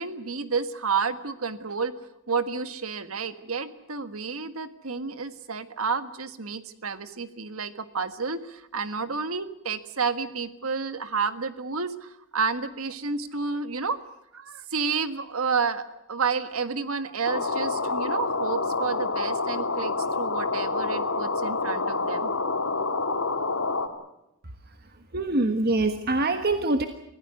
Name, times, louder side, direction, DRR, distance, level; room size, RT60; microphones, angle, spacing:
voice 1, 0.0-1.9 2.3-14.0 14.3-22.3, right 5 dB, 90° right, 11 dB, 1.6 m, -30 dB
sound 1, 17.3-23.9, left 3 dB, 85° left, 2.7 m, -27 dB
voice 2, 25.1-26.9, right 2 dB, 45° right, 7 dB, 1.4 m, -24 dB
25.0 x 16.5 x 9.5 m, 0.87 s
head